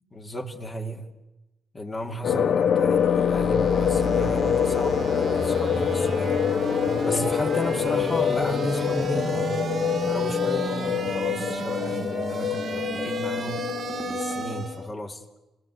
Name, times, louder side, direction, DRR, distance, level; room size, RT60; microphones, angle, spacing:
voice 1, 0.1-1.1 1.7-6.3 7.0-9.6 10.1-13.7 14.1-15.2, left 1 dB, 30° left, 2.8 m, -34 dB
sound 1, 2.2-14.9, left 8 dB, 60° left, 0.8 m, -25 dB
sound 2, 2.7-14.9, right 4 dB, 50° right, 1.8 m, -32 dB
29.0 x 19.0 x 8.3 m
cardioid pair, 90°, 0 cm